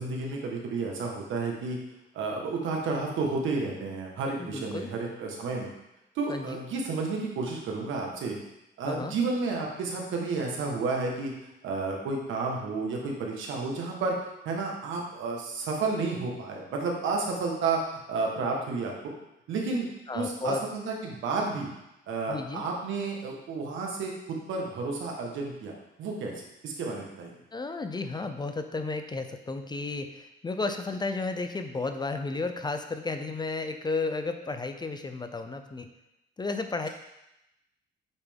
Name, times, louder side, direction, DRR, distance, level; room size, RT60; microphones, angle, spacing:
voice 1, 0.0-1.8 2.1-5.7 6.1-8.4 8.8-11.3 11.6-14.2 14.4-19.1 19.5-19.9 20.1-21.7 22.1-25.7 26.0-26.3 26.6-27.3, right 3 dB, 80° right, 0 dB, 1.3 m, -31 dB
voice 2, 4.4-4.9 6.3-6.6 8.8-9.1 20.1-20.6 22.3-22.7 27.5-35.9 36.4-36.9, left 3 dB, 20° left, 7 dB, 0.5 m, -33 dB
8.2 x 3.4 x 3.5 m, 0.88 s
cardioid pair, 90°, 20 cm